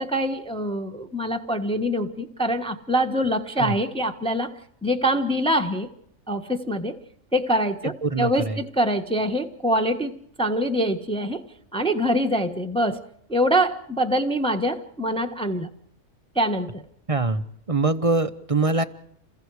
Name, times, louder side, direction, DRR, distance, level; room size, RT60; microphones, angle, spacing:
voice 1, 0.0-4.5 4.8-5.9 6.3-7.0 7.3-10.1 10.4-11.4 11.7-13.0 13.3-15.7 16.3-16.8, equal, 5° left, 4 dB, 1.2 m, -24 dB
voice 2, 7.8-8.6 17.1-18.8, right 3 dB, 30° right, 10 dB, 0.8 m, -24 dB
28.5 x 22.0 x 4.9 m, 0.70 s
omnidirectional pair, 1.6 m